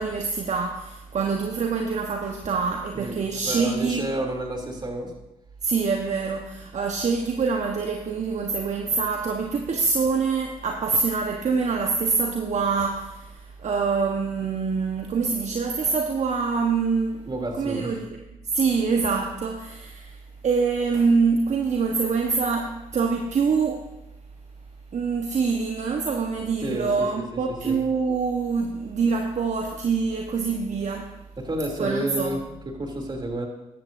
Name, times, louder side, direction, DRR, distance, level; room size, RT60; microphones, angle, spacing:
voice 1, 0.0-4.1 5.6-17.3 17.6-18.1 18.4-23.9 24.9-31.2 31.8-32.4, right 5 dB, 50° right, 1.2 m, -25 dB
voice 2, 2.9-5.1 17.2-18.0 26.6-27.8 31.4-33.5, right 1 dB, 30° right, 3.1 m, -31 dB
14.0 x 11.0 x 2.7 m
hypercardioid pair, 50°, 15 cm